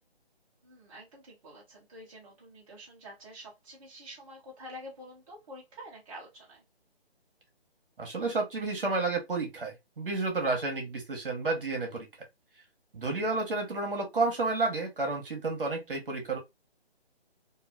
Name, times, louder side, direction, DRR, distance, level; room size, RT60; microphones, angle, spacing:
voice 1, 0.6-6.6, equal, 35° right, 1.1 m, -48 dB
voice 2, 8.0-12.1 12.9-16.4, right 3 dB, 60° right, 1.4 m, -31 dB
3.0 x 2.7 x 2.4 m
figure-of-eight pair, 150°, 31 cm